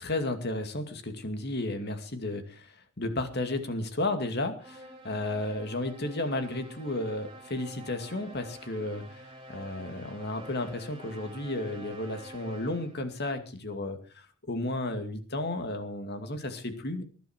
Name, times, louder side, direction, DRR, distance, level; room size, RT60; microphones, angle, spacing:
voice 1, 0.0-17.0, left 2 dB, 50° left, 7 dB, 2.5 m, -33 dB
sound 1, 4.6-13.1, right 1 dB, 25° right, 4.1 m, -48 dB
20.0 x 11.5 x 4.6 m, 0.37 s
head